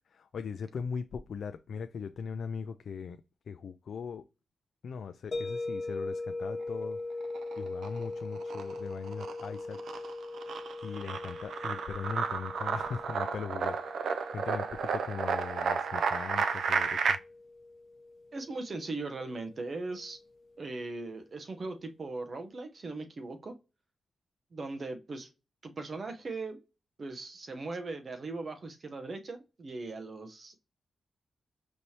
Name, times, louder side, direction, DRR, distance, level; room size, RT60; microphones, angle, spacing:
voice 1, 0.1-3.2 3.5-4.2 4.8-7.0 7.6-9.8 10.8-17.2, left 6 dB, 65° left, 0.3 m, -40 dB
sound 1, 5.3-20.2, left 2 dB, 40° left, 0.9 m, -41 dB
sound 2, 7.2-8.0 8.4-17.2, right 5 dB, 75° right, 0.3 m, -32 dB
voice 2, 18.3-20.2 20.6-23.5 24.5-25.3 25.6-26.6 27.0-30.6, right 3 dB, 40° right, 0.8 m, -39 dB
5.3 x 3.1 x 2.8 m
wide cardioid pair, 150°, 0 cm